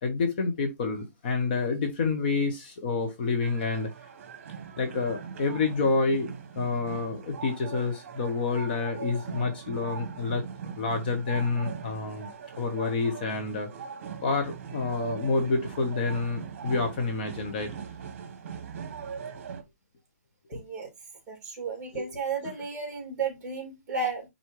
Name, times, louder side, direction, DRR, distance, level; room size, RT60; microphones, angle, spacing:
voice 1, 0.0-3.9 4.8-10.4 10.7-13.7 14.2-17.7 21.9-22.1, left 4 dB, 35° left, 1.2 m, -28 dB
sound 1, 3.4-19.6, right 7 dB, 45° right, 1.4 m, -41 dB
voice 2, 20.5-20.9 21.3-24.3, right 4 dB, 15° right, 2.9 m, -33 dB
9.5 x 4.0 x 3.3 m
hypercardioid pair, 170°, 9 cm